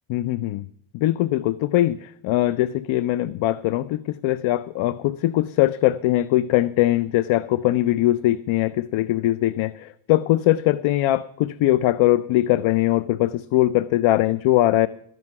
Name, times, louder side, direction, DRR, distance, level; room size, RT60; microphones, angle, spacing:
voice 1, 0.1-0.7 0.9-14.9, left 15 dB, 70° left, 15 dB, 0.6 m, -21 dB
13.5 x 11.0 x 5.8 m, 0.73 s
cardioid pair, 140°, 49 cm